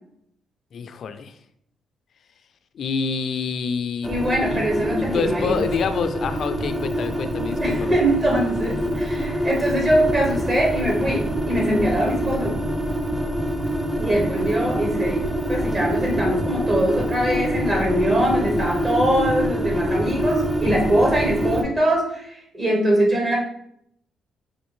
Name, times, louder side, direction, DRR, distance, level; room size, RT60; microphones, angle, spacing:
voice 1, 0.7-1.4 2.7-4.2 4.5-4.6 5.0-8.0 14.8-14.9, left 5 dB, 60° left, 9 dB, 0.3 m, -27 dB
sound 1, 4.0-21.6, equal, 10° right, 0.5 m, -25 dB
voice 2, 4.1-5.6 7.6-12.6 14.0-23.4, right 1 dB, 35° right, -1 dB, 0.8 m, -22 dB
4.1 x 2.5 x 3.1 m, 0.73 s
cardioid pair, 90°, 0 cm